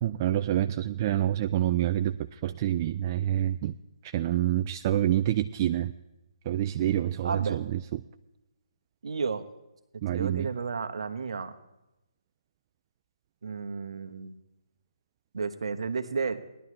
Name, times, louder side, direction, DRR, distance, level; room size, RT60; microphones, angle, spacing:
voice 1, 0.0-2.2 2.4-3.8 4.1-5.9 6.5-7.8 10.0-10.5, right 12 dB, 30° right, 8 dB, 0.3 m, -27 dB
voice 2, 7.2-7.6 9.0-9.4 10.1-11.5 13.4-14.3 15.3-16.4, right 5 dB, 65° right, 8 dB, 1.2 m, -32 dB
19.0 x 11.0 x 3.2 m, 0.94 s
figure-of-eight pair, 145°, 3 cm